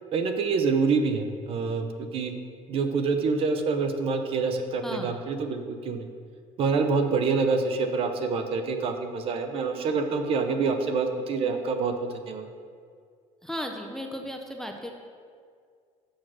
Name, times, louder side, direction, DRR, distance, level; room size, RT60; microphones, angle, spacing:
voice 1, 0.1-2.3 2.7-6.1 6.6-12.5, right 4 dB, 45° right, 7 dB, 0.7 m, -26 dB
voice 2, 13.4-14.9, equal, 5° left, 2 dB, 0.5 m, -35 dB
6.4 x 6.3 x 6.1 m, 2.1 s
cardioid pair, 155°, 13 cm